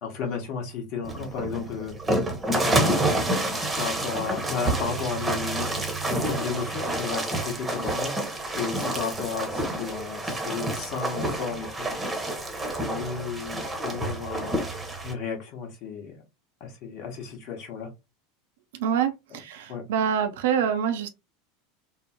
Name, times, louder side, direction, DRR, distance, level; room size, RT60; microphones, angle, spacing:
voice 1, 0.0-1.9 2.6-3.1 3.8-8.2 8.6-12.1 12.8-14.7 15.0-16.1 16.6-17.9 19.3-19.4 19.7-19.8, left 6 dB, 45° left, 1.0 m, -33 dB
sound 1, 1.0-15.1, right 1 dB, 10° right, 0.8 m, -28 dB
voice 2, 18.8-21.1, right 8 dB, 60° right, 0.4 m, -26 dB
3.7 x 2.0 x 2.8 m
figure-of-eight pair, 80°, 0 cm